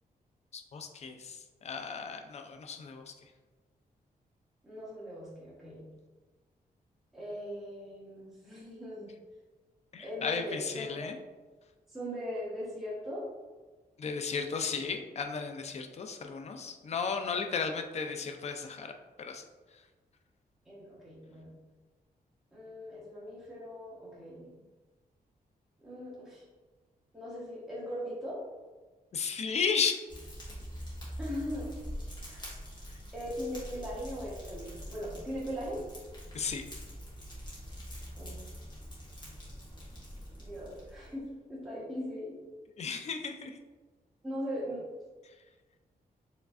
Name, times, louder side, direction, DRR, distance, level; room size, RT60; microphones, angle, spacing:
voice 1, 0.5-3.1 9.9-11.2 14.0-18.9 19.2-19.4 29.1-30.0 36.3-36.6 42.8-43.6, left 5 dB, 45° left, 5 dB, 0.4 m, -34 dB
voice 2, 4.6-5.8 7.1-9.1 10.0-11.1 11.9-13.2 20.6-21.5 22.5-24.5 25.8-26.5 27.1-28.4 31.2-31.7 32.2-32.5 33.1-35.8 38.2-38.4 40.4-42.4 44.2-44.8, equal, ahead, -9 dB, 1.3 m, -39 dB
Fire, 30.1-41.2, equal, 30° left, 1.4 m, -44 dB
4.8 x 3.1 x 2.5 m, 1.3 s
wide cardioid pair, 125°, 15 cm